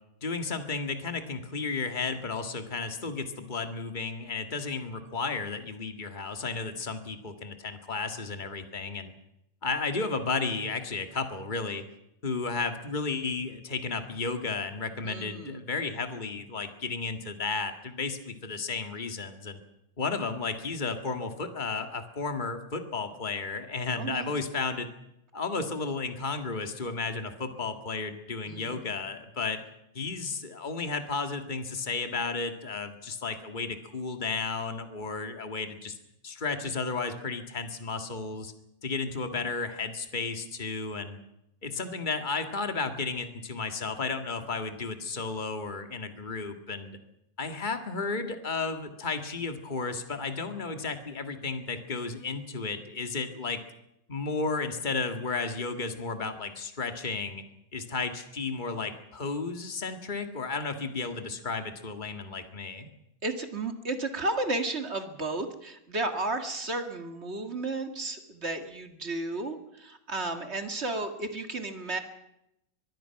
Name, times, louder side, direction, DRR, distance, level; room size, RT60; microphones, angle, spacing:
voice 1, 0.2-9.1 9.6-11.8 12.2-19.6 20.0-24.9 25.3-29.6 29.9-35.9 36.2-38.5 38.8-41.2 41.6-47.0 47.4-53.6 54.1-57.4 57.7-62.9, left 4 dB, 35° left, 7 dB, 0.7 m, -33 dB
voice 2, 15.0-15.6 23.9-24.3 28.4-28.8 63.2-72.0, right 2 dB, 35° right, 6 dB, 1.1 m, -33 dB
24.0 x 22.0 x 5.9 m, 0.82 s
omnidirectional pair, 4.2 m